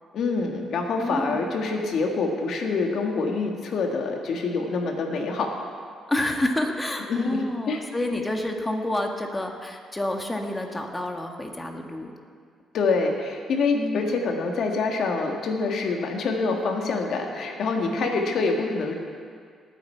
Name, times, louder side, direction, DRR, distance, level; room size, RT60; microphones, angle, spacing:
voice 1, 0.1-5.6 7.1-7.4 7.7-7.8 12.7-18.9, left 4 dB, 70° left, 2 dB, 1.9 m, -26 dB
voice 2, 1.0-1.5 6.1-12.1 13.7-14.1 17.8-18.1, left 1 dB, 15° left, 3 dB, 1.6 m, -29 dB
18.5 x 9.3 x 4.6 m, 2.1 s
cardioid pair, 90°, 0 cm